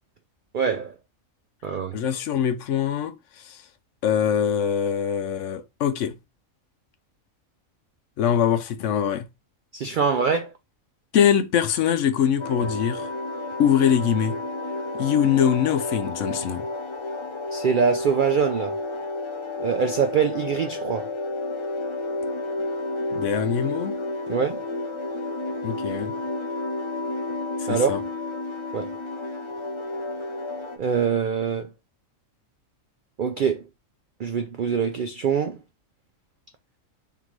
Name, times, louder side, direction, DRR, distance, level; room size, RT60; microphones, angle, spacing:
voice 1, 0.5-0.9 1.6-2.0 9.7-10.5 17.5-18.7 19.6-21.1 24.3-24.7 27.7-27.9 28.7-28.9 30.8-31.7 33.2-33.6 34.2-35.6, right 6 dB, 85° right, 0.4 m, -24 dB
voice 2, 1.9-3.1 3.5-3.6 4.0-6.1 8.2-9.3 11.1-13.1 13.6-14.4 15.0-16.7 23.1-23.9 25.6-26.1 27.7-28.0, left 8 dB, 70° left, 0.9 m, -23 dB
sound 1, 12.4-30.8, left 2 dB, 35° left, 0.5 m, -31 dB
3.7 x 3.7 x 3.0 m
omnidirectional pair, 1.4 m